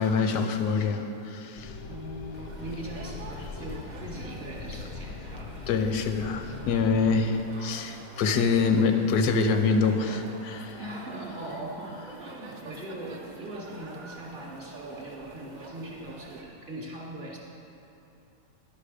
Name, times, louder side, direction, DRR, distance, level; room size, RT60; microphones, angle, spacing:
voice 1, 0.0-1.8 5.7-10.8, left 4 dB, 80° left, 7 dB, 1.1 m, -25 dB
sound 1, 1.6-7.2, left 4 dB, 65° left, 0.7 m, -41 dB
voice 2, 1.8-5.6 7.0-7.1 10.8-17.4, right 1 dB, 45° right, -3 dB, 0.8 m, -40 dB
sound 2, 2.3-16.4, right 3 dB, 90° right, 0.4 m, -46 dB
10.5 x 5.3 x 4.9 m, 2.9 s
omnidirectional pair, 1.7 m